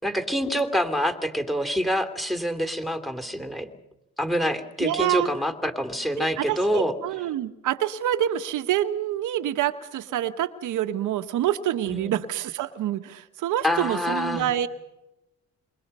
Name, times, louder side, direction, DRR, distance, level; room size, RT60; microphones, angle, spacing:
voice 1, 0.0-3.7 4.2-6.9 11.9-12.1 13.6-14.5, equal, ahead, 8 dB, 3.0 m, -26 dB
voice 2, 4.8-5.3 6.2-14.7, right 11 dB, 85° right, 9 dB, 1.3 m, -27 dB
27.0 x 23.0 x 5.6 m, 0.93 s
cardioid pair, 90°, 30 cm